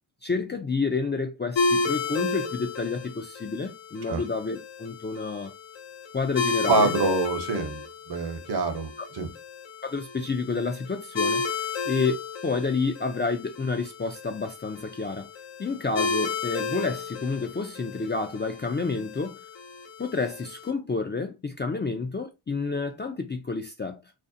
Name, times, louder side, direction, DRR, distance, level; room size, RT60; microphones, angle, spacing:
voice 1, 0.2-5.5 6.1-6.9 9.0-9.1 9.8-12.2 12.4-15.3 15.6-19.4 20.0-24.0, left 4 dB, 25° left, 0.3 m, -29 dB
sound 1, 1.6-20.7, left 4 dB, 65° left, 0.6 m, -33 dB
voice 2, 6.7-9.3, right 3 dB, 55° right, 0.8 m, -26 dB
2.5 x 2.0 x 2.6 m
cardioid pair, 50°, 47 cm